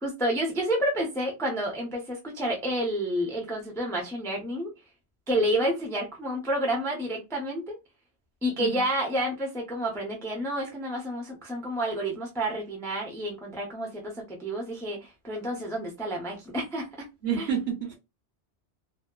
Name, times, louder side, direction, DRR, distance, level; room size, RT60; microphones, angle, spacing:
voice 1, 0.0-4.7 5.3-7.8 8.4-17.0 17.3-17.5, right 1 dB, 5° left, 0.4 m, -30 dB
voice 2, 17.2-18.0, right 7 dB, 65° right, 1.0 m, -29 dB
2.7 x 2.1 x 2.3 m
omnidirectional pair, 1.2 m